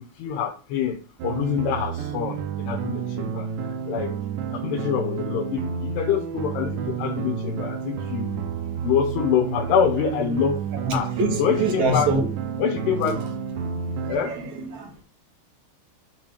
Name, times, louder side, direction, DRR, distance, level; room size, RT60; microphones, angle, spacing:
voice 1, 0.2-1.0 1.2-3.5 3.9-4.1 4.5-8.4 8.8-10.6 10.9-11.1 11.4-12.2 12.6-13.2 14.1-14.3, left 7 dB, 80° left, 3.1 m, -25 dB
sound 1, 1.2-14.1, right 6 dB, 85° right, 3.1 m, -30 dB
voice 2, 10.9-12.3 13.0-13.1 14.0-15.0, right 2 dB, 55° right, 2.3 m, -25 dB
8.0 x 3.9 x 6.4 m
omnidirectional pair, 4.8 m